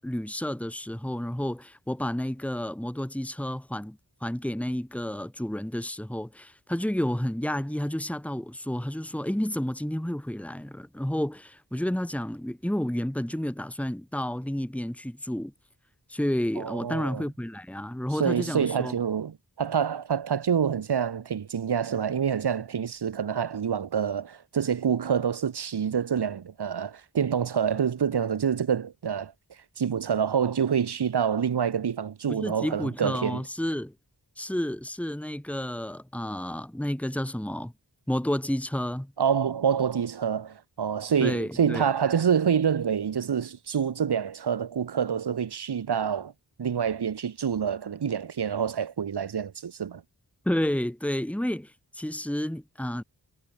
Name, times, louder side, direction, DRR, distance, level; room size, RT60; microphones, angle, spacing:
voice 1, 0.0-15.5 16.1-18.9 32.3-33.9 34.4-37.7 38.1-39.1 41.2-41.9 50.5-53.0, left 1 dB, 5° left, 1.9 m, -30 dB
voice 2, 16.6-17.2 18.2-29.3 29.8-33.4 39.2-46.3 46.6-50.0, right 7 dB, 70° right, 0.9 m, -27 dB
wide cardioid pair, 60°, 41 cm